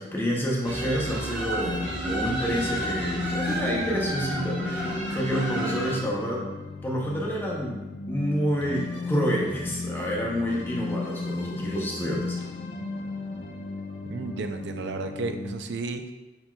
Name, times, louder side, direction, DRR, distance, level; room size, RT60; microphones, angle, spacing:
voice 1, 0.0-1.8 2.1-6.4 6.8-7.8 8.1-12.4, equal, 10° left, -4 dB, 0.6 m, -28 dB
sound 1, 0.6-6.0, right 1 dB, 5° right, 1.0 m, -31 dB
sound 2, 1.6-15.6, left 3 dB, 65° left, 0.6 m, -35 dB
voice 2, 14.1-16.1, right 3 dB, 70° right, 7 dB, 0.4 m, -33 dB
5.8 x 4.0 x 2.2 m, 1.1 s
head